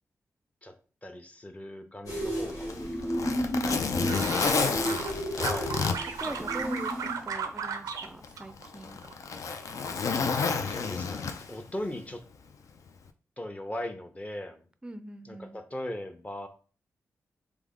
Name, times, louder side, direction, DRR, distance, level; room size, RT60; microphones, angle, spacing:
voice 1, 1.0-4.2 5.4-5.8 6.2-6.4 10.3-12.2 13.4-14.6 15.2-16.5, left 1 dB, 25° left, 6 dB, 0.7 m, -39 dB
sound 1, 2.1-7.2, equal, 85° left, 1.2 m, -33 dB
Zipper (clothing), 2.5-7.0 7.4-7.5 8.2-11.7 12.9-13.1, left 5 dB, 65° left, 0.4 m, -30 dB
sound 2, 3.6-5.1 5.4-8.1 8.4-9.1 9.4-9.9, right 6 dB, 85° right, 0.4 m, -35 dB
voice 2, 3.8-5.0 5.8-9.0 14.8-15.6, right 2 dB, 15° right, 10 dB, 0.4 m, -43 dB
3.3 x 2.0 x 3.6 m, 0.38 s
cardioid pair, 50°, 6 cm